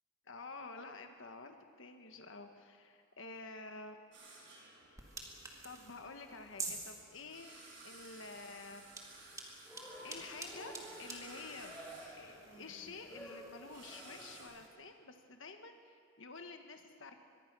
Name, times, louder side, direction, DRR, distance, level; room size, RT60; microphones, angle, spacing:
voice 1, 0.3-4.0 5.6-9.4 10.0-10.7 11.0-11.8 12.1-17.2, left 3 dB, 65° left, 5 dB, 1.3 m, -50 dB
sound 1, 4.1-14.4, right 2 dB, 60° right, 6.0 m, -57 dB
sound 2, 5.0-14.7, right 3 dB, 15° right, 2.0 m, -50 dB
Cheering, 9.6-14.6, right 1 dB, 10° left, 4.1 m, -52 dB
24.0 x 21.0 x 6.1 m, 2.2 s
head